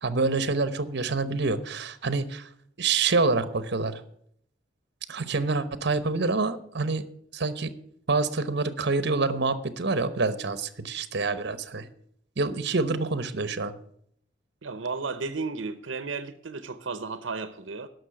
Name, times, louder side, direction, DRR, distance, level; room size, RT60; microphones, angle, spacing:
voice 1, 0.0-2.5 2.8-4.0 5.1-7.0 7.3-7.7 8.1-11.9 12.4-13.7, right 3 dB, 60° right, 1.0 m, -27 dB
voice 2, 14.6-17.9, right 4 dB, 90° right, 0.8 m, -33 dB
11.5 x 6.3 x 9.0 m
head